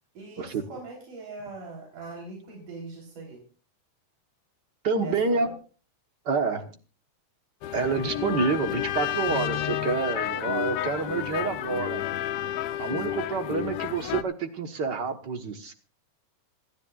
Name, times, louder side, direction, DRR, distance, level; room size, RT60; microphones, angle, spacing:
voice 1, 0.2-3.4 5.0-5.5, right 3 dB, 85° right, 0 dB, 5.1 m, -41 dB
voice 2, 4.8-5.5 6.2-6.7 7.7-12.1 12.8-15.7, right 4 dB, 60° right, 6 dB, 1.1 m, -28 dB
sound 1, 7.6-14.2, left 12 dB, 85° left, 1.3 m, -30 dB
27.5 x 10.5 x 2.4 m, 0.37 s
omnidirectional pair, 3.6 m